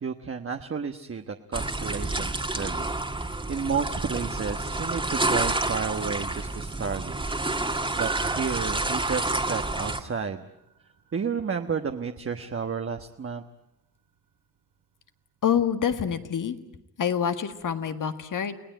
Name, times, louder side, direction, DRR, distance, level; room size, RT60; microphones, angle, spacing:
voice 1, 0.0-10.4 11.1-13.4, right 6 dB, 40° right, 5 dB, 1.2 m, -32 dB
sound 1, 1.5-10.0, right 2 dB, 15° right, 1.9 m, -29 dB
Piano, 8.0-12.6 12.8-12.9, right 6 dB, 75° right, 5.1 m, -41 dB
voice 2, 15.4-16.6 17.0-18.6, left 8 dB, 60° left, 9 dB, 1.9 m, -26 dB
30.0 x 19.0 x 9.0 m, 0.85 s
wide cardioid pair, 115°, 35 cm